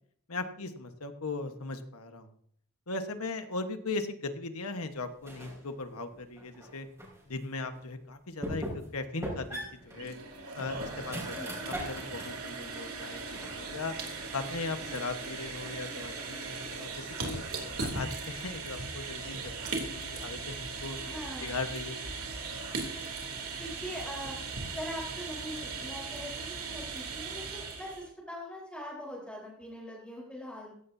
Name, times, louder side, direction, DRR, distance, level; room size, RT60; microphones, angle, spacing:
voice 1, 0.3-2.3 2.9-6.9 7.3-9.6 9.8-10.1 10.5-13.9 14.3-17.4 17.8-21.0 21.4-22.0, left 3 dB, 80° left, 7 dB, 1.4 m, -38 dB
sound 1, 5.2-5.6 6.1-7.2 7.7-7.8 8.4-8.9 9.2-12.4 12.8-13.7, equal, 15° right, 5.3 m, -40 dB
sound 2, 9.8-28.1, right 4 dB, 70° right, 3.2 m, -38 dB
voice 2, 21.0-21.6 23.5-24.4 24.8-30.7, equal, 5° left, -6 dB, 4.2 m, -42 dB
16.0 x 15.0 x 2.8 m, 0.63 s
head